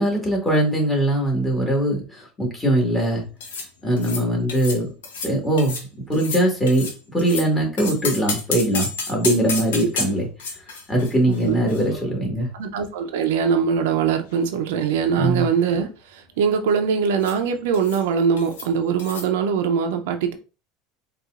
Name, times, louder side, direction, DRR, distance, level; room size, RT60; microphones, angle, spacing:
voice 1, 0.0-3.2 3.8-4.9 5.2-10.3 10.9-12.5 15.2-15.5, right 1 dB, 15° left, 1.6 m, -21 dB
sound 1, 3.4-3.7 4.0-4.2 4.5-4.8 5.0-5.3 5.6-5.9 6.1-7.5 7.8-12.5 12.7-12.8 13.6-14.5 14.8-15.0 15.3-15.8 17.2-17.4 17.7-18.1 18.4-18.7 19.0-19.3, left 4 dB, 90° left, 0.7 m, -31 dB
voice 2, 11.3-11.6 12.5-20.3, right 6 dB, 80° right, 0.5 m, -22 dB
4.0 x 2.4 x 2.4 m
supercardioid pair, 100°, 0 cm